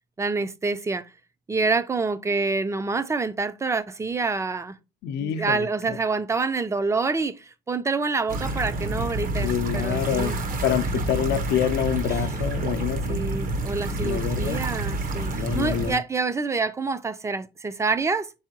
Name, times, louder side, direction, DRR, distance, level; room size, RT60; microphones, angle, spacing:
voice 1, 0.2-1.1 1.5-4.8 5.2-10.4 13.1-18.3, right 4 dB, 15° right, 0.5 m, -27 dB
voice 2, 5.0-5.7 9.4-13.3 14.0-14.7 15.3-16.0, left 10 dB, 75° left, 0.6 m, -27 dB
sound 1, 8.3-15.9, right 2 dB, 55° right, 1.0 m, -28 dB
4.7 x 3.7 x 2.8 m
cardioid pair, 110°, 17 cm